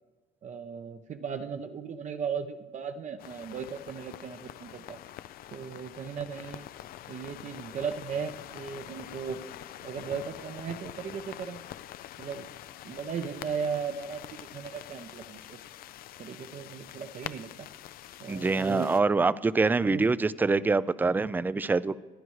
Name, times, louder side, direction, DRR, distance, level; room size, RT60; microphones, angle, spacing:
voice 1, 0.4-5.0 5.5-6.7 7.1-9.4 9.8-11.6 12.2-12.5 12.8-15.6 16.2-17.7 18.2-18.9 19.8-20.1, right 6 dB, 45° right, 6 dB, 0.7 m, -36 dB
sound 1, 3.2-19.0, left 13 dB, 60° left, 0.4 m, -45 dB
voice 2, 18.3-22.0, right 3 dB, 10° right, 17 dB, 0.3 m, -25 dB
25.5 x 10.5 x 3.2 m, 1.3 s
cardioid pair, 110°, 17 cm